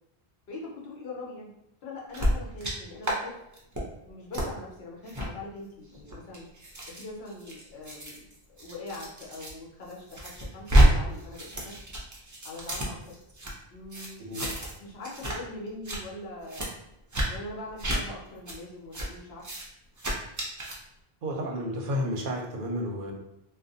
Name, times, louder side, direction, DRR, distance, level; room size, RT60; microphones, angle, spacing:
voice 1, 0.5-1.5 1.8-3.4 4.1-6.5 6.9-11.8 12.4-13.2 13.7-14.3 14.8-16.7 17.2-19.4, left 2 dB, 80° left, -3 dB, 1.0 m, -42 dB
sound 1, 2.1-2.7 3.0-3.2 3.5-3.8 4.3-4.5 5.1-5.3 5.9-9.5 9.9-10.9 11.1-13.5 13.9-14.8 15.0-15.4 15.7-16.0 16.5-16.7 17.1-17.3 17.8-18.0 18.5-18.6 18.9-19.1 19.4-19.6 20.0-20.8, right 1 dB, 30° right, 0.3 m, -28 dB
voice 2, 21.2-23.1, equal, 60° right, 1 dB, 0.7 m, -31 dB
2.5 x 2.2 x 2.5 m, 0.83 s
omnidirectional pair, 1.0 m